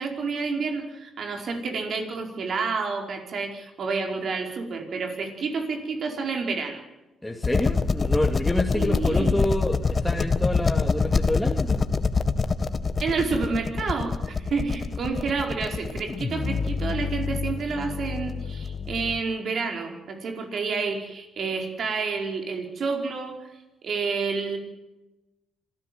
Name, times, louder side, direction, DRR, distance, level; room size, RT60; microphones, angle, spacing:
voice 1, 0.0-6.8 8.7-9.4 13.0-23.5 23.8-24.6, right 4 dB, 60° right, 3 dB, 4.8 m, -29 dB
voice 2, 7.2-11.8, left 1 dB, 10° left, 1 dB, 2.3 m, -28 dB
sound 1, 7.4-19.2, left 4 dB, 40° left, 1.6 m, -26 dB
26.5 x 14.5 x 7.8 m, 1.0 s
hypercardioid pair, 50°, 0 cm